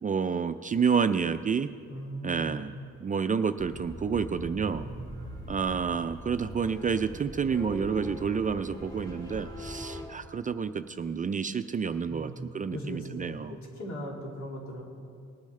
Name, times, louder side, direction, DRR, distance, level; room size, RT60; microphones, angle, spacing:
voice 1, 0.0-1.7 2.2-2.7 3.0-4.9 5.5-13.6, right 6 dB, 25° right, 10 dB, 0.4 m, -29 dB
voice 2, 1.9-2.6 4.8-5.4 12.1-14.8, equal, 70° left, -2 dB, 2.5 m, -39 dB
sound 1, 3.6-10.1, equal, 15° left, 1.6 m, -41 dB
19.5 x 8.4 x 3.2 m, 2.3 s
cardioid pair, 90°, 30 cm